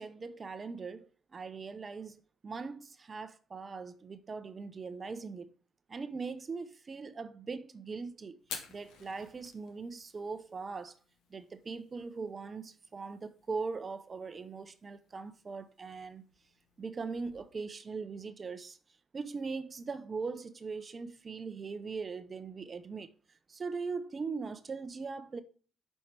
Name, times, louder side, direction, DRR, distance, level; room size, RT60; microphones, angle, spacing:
voice 1, 0.0-5.5 5.9-8.4 8.7-10.9 11.3-16.2 16.8-18.8 19.1-23.1 23.5-25.4, right 4 dB, 35° right, 0.7 m, -40 dB
Fire, 8.4-17.6, left 6 dB, 85° left, 1.4 m, -53 dB
7.7 x 5.4 x 3.2 m
cardioid pair, 90°, 0 cm